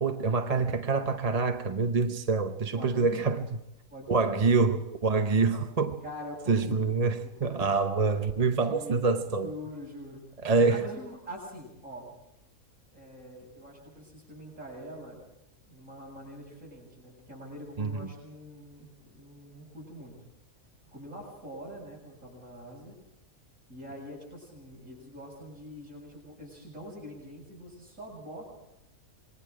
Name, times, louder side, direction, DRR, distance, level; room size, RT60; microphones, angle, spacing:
voice 1, 0.0-3.4 4.1-6.0 6.5-9.5 10.4-10.8 17.8-18.1, right 4 dB, 30° right, 0.8 m, -26 dB
voice 2, 2.7-3.2 3.9-4.5 5.3-5.7 6.0-6.8 7.2-7.7 8.7-9.1 9.4-10.2 10.5-12.1 12.9-15.2 15.7-20.2 20.9-22.9 23.7-28.5, equal, 60° right, 7.5 m, -44 dB
27.0 x 21.5 x 5.0 m
omnidirectional pair, 1.5 m